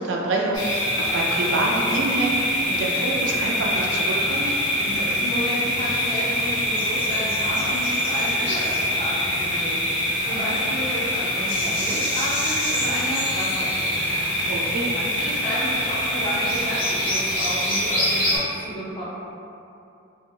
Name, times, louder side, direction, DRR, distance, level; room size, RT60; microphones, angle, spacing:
voice 1, 0.0-4.5 14.5-14.9, right 2 dB, 60° right, -2 dB, 0.4 m, -26 dB
sound 1, 0.5-18.4, equal, 75° left, 1.2 m, -24 dB
voice 2, 4.8-14.2 14.9-19.0, equal, 25° left, -9 dB, 0.7 m, -32 dB
2.7 x 2.6 x 2.8 m, 2.7 s
head